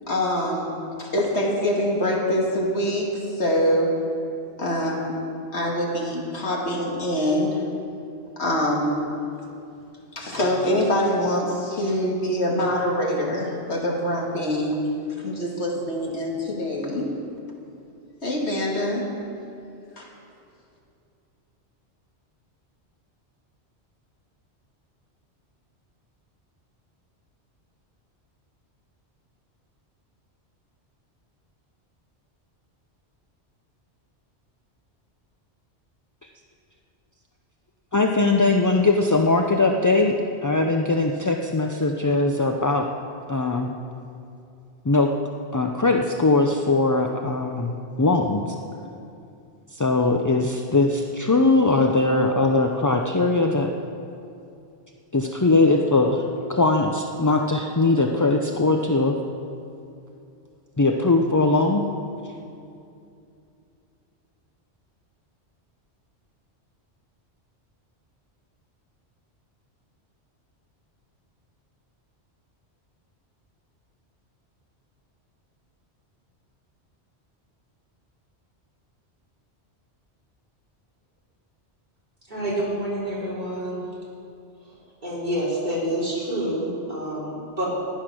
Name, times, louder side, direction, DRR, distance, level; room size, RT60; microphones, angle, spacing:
voice 1, 0.1-3.1 3.3-4.0 4.6-5.2 5.5-7.6 8.4-9.0 10.1-14.8 15.2-17.1 18.2-19.1 20.0-20.1, equal, 75° left, -2 dB, 2.4 m, -24 dB
voice 2, 37.9-40.1 40.4-42.9 43.3-43.7 44.8-45.1 45.5-48.4 49.7-53.7 55.1-56.2 56.5-59.1 60.8-61.8, left 3 dB, 25° left, 2 dB, 0.4 m, -20 dB
voice 3, 82.3-83.9 84.6-84.7 85.0-87.7, right 1 dB, 40° right, -6 dB, 3.8 m, -28 dB
14.5 x 10.5 x 6.2 m, 2.6 s
omnidirectional pair, 1.1 m